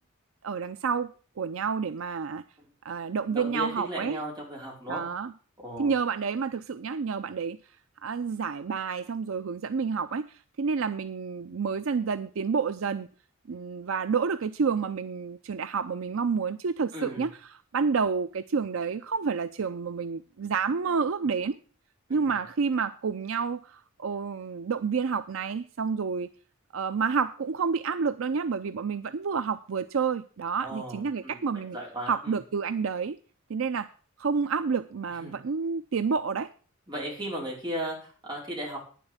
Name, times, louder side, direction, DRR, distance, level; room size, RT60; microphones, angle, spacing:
voice 1, 0.4-1.1 1.4-2.4 2.8-4.2 4.9-5.3 5.8-7.6 8.0-13.1 13.5-17.3 17.7-21.6 22.1-26.3 26.7-31.8 32.1-33.2 33.5-33.9 34.2-36.5, right 5 dB, 70° right, 12 dB, 0.5 m, -29 dB
voice 2, 3.3-5.0 5.6-5.9 16.9-17.3 22.1-22.3 30.6-32.4 35.2-35.4 36.9-38.8, equal, 20° right, -3 dB, 4.8 m, -36 dB
9.8 x 7.6 x 8.0 m, 0.40 s
head